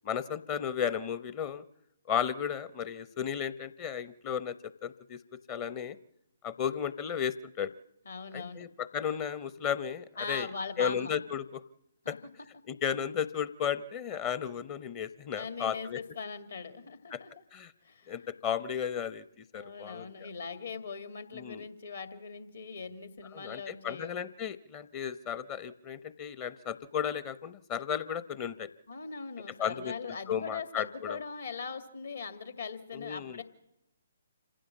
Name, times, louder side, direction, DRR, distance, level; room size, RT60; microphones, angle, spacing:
voice 1, 0.0-1.6 2.1-4.6 4.8-5.2 5.5-6.0 6.4-7.7 8.3-10.5 10.8-11.6 12.1-12.2 12.7-16.0 17.1-17.2 17.5-17.7 18.1-19.2 19.5-20.1 21.3-21.6 23.3-28.7 29.6-29.9 30.3-31.2 32.9-33.4, left 8 dB, 25° left, 15 dB, 0.7 m, -34 dB
voice 2, 8.1-8.7 10.2-11.1 12.0-12.2 15.4-17.3 17.8-18.3 19.5-24.1 28.9-33.4, left 5 dB, 65° left, 9 dB, 2.2 m, -40 dB
27.0 x 15.5 x 7.3 m, 0.88 s
figure-of-eight pair, 135°, 0 cm